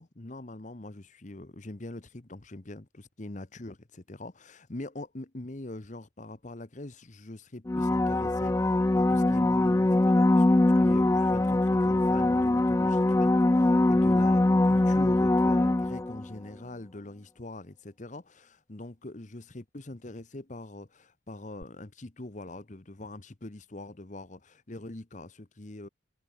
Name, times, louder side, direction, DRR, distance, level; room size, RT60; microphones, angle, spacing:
voice 1, 0.0-10.5 10.8-25.9, left 2 dB, 40° left, 1.0 m, -43 dB
sound 1, 7.7-16.3 21.6-21.7, left 2 dB, 15° left, 0.3 m, -23 dB
head